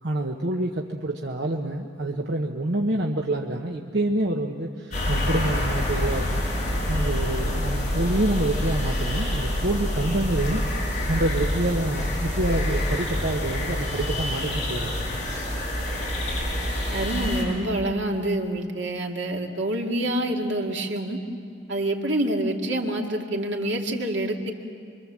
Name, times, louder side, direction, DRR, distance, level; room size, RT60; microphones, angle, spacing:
voice 1, 0.0-6.4 6.9-15.1, right 1 dB, 65° right, 1 dB, 1.2 m, -27 dB
sound 1, 4.9-17.4, left 1 dB, 40° left, 7.0 m, -27 dB
voice 2, 16.9-21.2 21.7-24.5, right 1 dB, 80° right, 1 dB, 2.2 m, -27 dB
25.5 x 24.0 x 7.5 m, 2.3 s
head